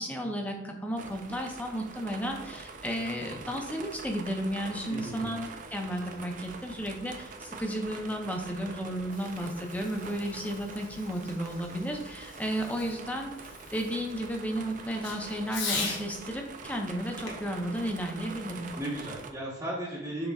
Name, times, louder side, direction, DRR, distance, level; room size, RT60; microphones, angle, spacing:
voice 1, 0.0-18.7, equal, 10° left, 2 dB, 0.5 m, -33 dB
sound 1, 1.0-19.3, right 4 dB, 40° right, 0.4 m, -45 dB
voice 2, 4.9-5.3 18.7-20.3, right 1 dB, 15° right, -8 dB, 0.9 m, -35 dB
Fireworks, 8.9-16.1 17.2-18.9, left 4 dB, 80° left, 0.9 m, -41 dB
6.6 x 3.4 x 2.3 m, 0.91 s
head